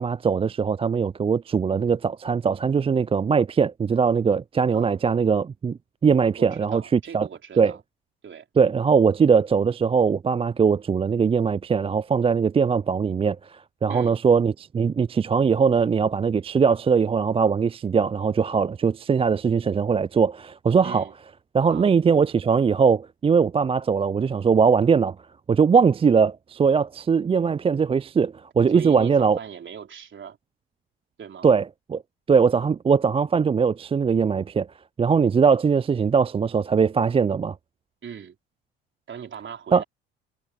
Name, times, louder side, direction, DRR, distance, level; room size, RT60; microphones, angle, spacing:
voice 1, 0.0-7.3 7.6-7.7 8.6-21.1 21.5-25.2 25.5-29.4 31.4-32.0 32.3-34.7 35.0-37.6 39.7-39.8, right 6 dB, 20° right, 0.4 m, -21 dB
voice 2, 6.4-7.8 8.2-8.5 13.9-14.2 20.8-21.1 21.7-21.9 28.7-30.4 31.2-31.5 38.0-38.4 39.1-39.8, right 7 dB, 40° right, 3.9 m, -39 dB
hypercardioid pair, 60°, 29 cm